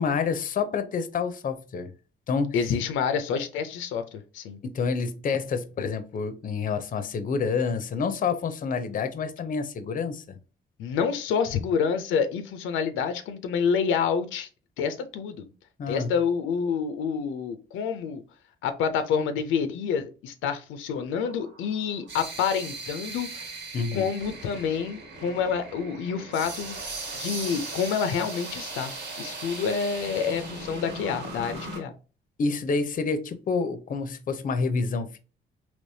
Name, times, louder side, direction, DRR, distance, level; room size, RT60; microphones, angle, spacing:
voice 1, 0.0-1.9 2.3-2.6 4.6-10.4 15.8-16.1 23.7-24.1 29.5-29.6 32.4-35.2, left 5 dB, 45° left, 0.5 m, -28 dB
voice 2, 2.5-4.6 10.8-14.5 14.8-15.5 15.9-18.2 18.6-23.5 23.9-31.9, left 6 dB, 90° left, 0.5 m, -28 dB
sound 1, 21.2-31.8, right 3 dB, 65° right, 1.4 m, -38 dB
3.3 x 3.0 x 2.7 m
cardioid pair, 90°, 20 cm